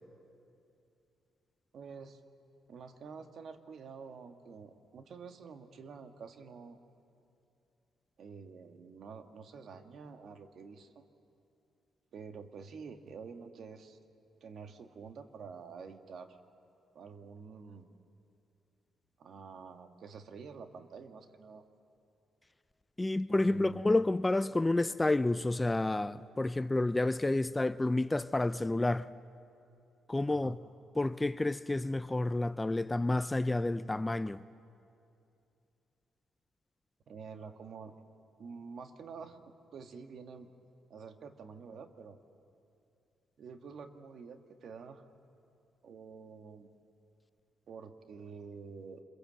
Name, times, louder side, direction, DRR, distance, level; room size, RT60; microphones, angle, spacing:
voice 1, 1.7-2.2 2.7-6.8 8.2-11.1 12.1-14.0 14.4-16.4 17.0-17.9 19.2-21.6 23.3-23.9 30.3-30.6 37.1-37.9 38.4-39.4 39.7-40.5 40.9-42.2 43.4-45.0 45.8-46.7 47.7-49.0, right 5 dB, 60° right, 1.6 m, -48 dB
voice 2, 23.0-29.1 30.1-30.6 31.0-34.4, left 2 dB, 15° left, 0.5 m, -30 dB
26.5 x 21.5 x 7.8 m
cardioid pair, 90°, 0 cm